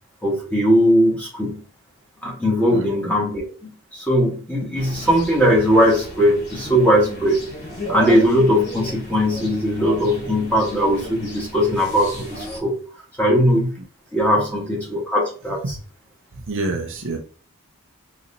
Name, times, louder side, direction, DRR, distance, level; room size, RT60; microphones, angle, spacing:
voice 1, 0.2-1.6 2.2-7.4 7.9-12.7 13.2-13.7 14.1-15.6, equal, 5° left, -3 dB, 1.4 m, -19 dB
sound 1, 4.7-12.6, equal, 50° left, 1.1 m, -33 dB
voice 2, 16.5-17.2, right 2 dB, 55° right, 4 dB, 0.6 m, -26 dB
4.0 x 3.1 x 2.6 m, 0.38 s
head